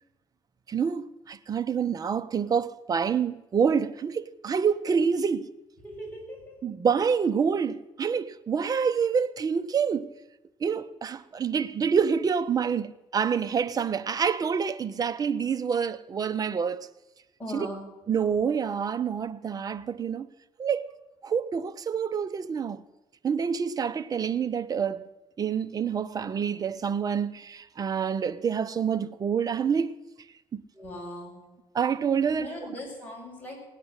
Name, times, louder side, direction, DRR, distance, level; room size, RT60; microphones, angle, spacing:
voice 1, 0.7-5.5 6.6-10.1 10.6-16.9 17.5-17.7 18.1-20.3 20.6-20.9 21.2-22.8 23.2-25.1 25.4-30.0 30.5-30.6 31.7-32.5, right 6 dB, 40° right, 0.9 m, -27 dB
voice 2, 5.8-6.5 17.4-17.8 30.7-31.5 32.4-33.6, equal, 15° left, 7.2 m, -39 dB
18.0 x 9.5 x 8.1 m
cardioid pair, 105°, 10 cm